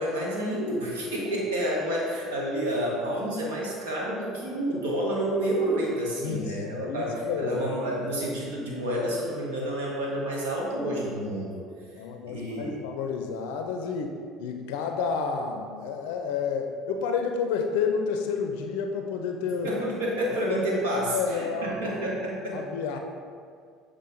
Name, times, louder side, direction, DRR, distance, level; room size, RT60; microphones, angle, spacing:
voice 1, 0.0-7.1 7.4-11.6 12.2-12.8 19.6-22.5, right 1 dB, 80° right, -3 dB, 1.3 m, -29 dB
voice 2, 6.2-7.6 12.0-19.7 20.5-22.0 22.5-23.0, left 6 dB, 75° left, 4 dB, 0.4 m, -30 dB
7.4 x 3.2 x 4.0 m, 2.1 s
hypercardioid pair, 65°, 0 cm